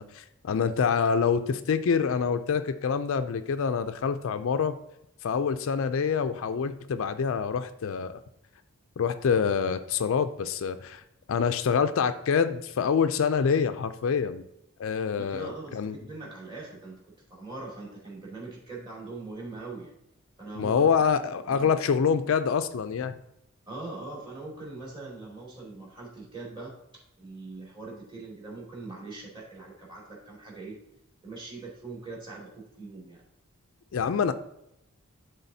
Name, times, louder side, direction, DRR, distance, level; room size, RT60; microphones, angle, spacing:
voice 1, 0.0-4.8 5.2-8.1 9.0-11.0 11.3-14.5 14.8-16.0 20.6-23.1 33.9-34.3, left 6 dB, 60° left, 10 dB, 0.4 m, -26 dB
voice 2, 15.1-19.9 20.4-20.9 21.5-21.7 23.7-26.7 27.2-30.8 31.2-33.2, right 3 dB, 20° right, -5 dB, 2.4 m, -42 dB
11.0 x 3.8 x 2.7 m, 0.81 s
head